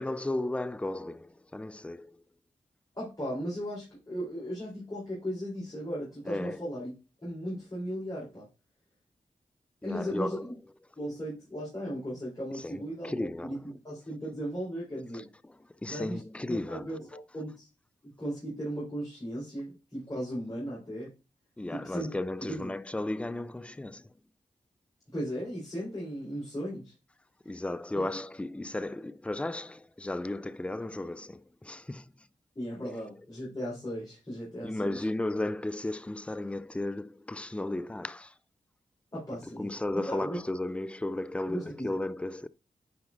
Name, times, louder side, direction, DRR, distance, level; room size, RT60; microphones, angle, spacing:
voice 1, 0.0-2.2 6.3-6.7 9.8-10.5 12.5-13.6 15.1-17.0 21.6-24.1 27.5-32.3 34.6-38.4 39.4-42.5, left 2 dB, 10° left, 0.3 m, -35 dB
voice 2, 2.9-6.9 7.2-8.5 9.8-10.5 11.0-13.6 13.8-15.3 15.9-16.2 16.5-17.7 18.0-21.1 21.7-22.1 22.4-22.7 25.1-26.9 27.9-28.0 32.6-35.0 39.1-40.4 41.5-41.9, equal, 25° left, 3.9 m, -36 dB
9.3 x 4.8 x 2.5 m
cardioid pair, 55°, 14 cm